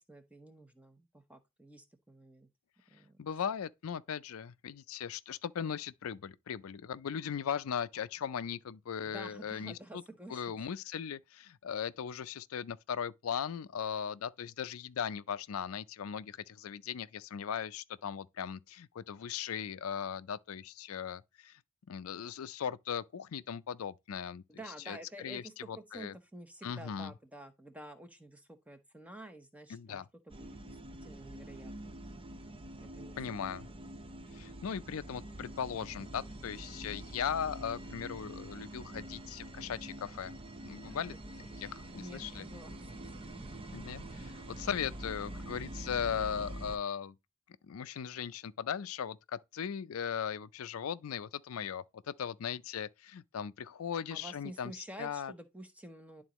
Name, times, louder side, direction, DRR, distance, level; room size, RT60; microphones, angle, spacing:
voice 1, 0.0-2.5 2.9-3.2 9.0-10.6 24.5-31.9 32.8-33.5 40.8-41.2 41.9-42.8 43.2-43.5 43.9-44.0 54.1-56.2, right 1 dB, 5° right, 0.8 m, -50 dB
voice 2, 3.2-10.0 10.3-21.6 21.9-24.4 24.9-26.1 26.6-27.1 29.7-30.1 33.2-33.7 34.3-40.4 40.6-41.1 41.6-42.4 43.7-47.1 47.5-54.7 55.0-55.3, left 7 dB, 85° left, 0.4 m, -38 dB
sound 1, 30.3-46.8, right 1 dB, 25° right, 0.5 m, -46 dB
11.0 x 3.9 x 3.0 m
head